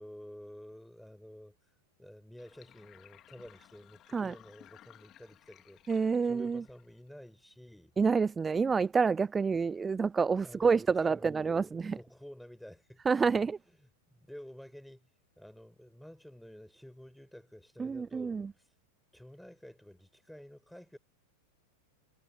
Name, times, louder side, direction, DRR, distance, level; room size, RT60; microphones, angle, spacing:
voice 1, 0.0-1.6 2.0-7.9 8.7-8.8 10.4-13.0 13.8-18.7 19.1-21.0, equal, ahead, 5.5 m, -51 dB
Sink (filling or washing), 2.4-7.3, left 12 dB, 30° left, 2.8 m, -59 dB
voice 2, 5.9-6.6 8.0-12.0 13.1-13.6 17.8-18.5, right 5 dB, 15° right, 0.3 m, -28 dB
figure-of-eight pair, 90°, 0 cm